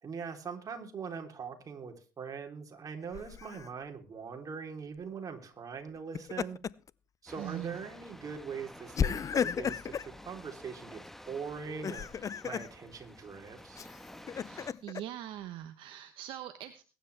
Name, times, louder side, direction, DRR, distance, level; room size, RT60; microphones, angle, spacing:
voice 1, 0.0-6.6 7.2-13.9, right 6 dB, 40° right, 3 dB, 3.5 m, -42 dB
Laughter, 3.1-3.7 6.0-6.9 7.3-7.5 8.9-10.1 11.7-12.7 13.8-15.0, left 7 dB, 35° left, 0.6 m, -34 dB
sound 1, 7.3-14.7, left 1 dB, 5° left, 1.3 m, -51 dB
voice 2, 7.4-7.8 14.3-17.0, right 13 dB, 65° right, 9 dB, 1.1 m, -42 dB
21.5 x 10.5 x 3.4 m, 0.34 s
hypercardioid pair, 65°, 9 cm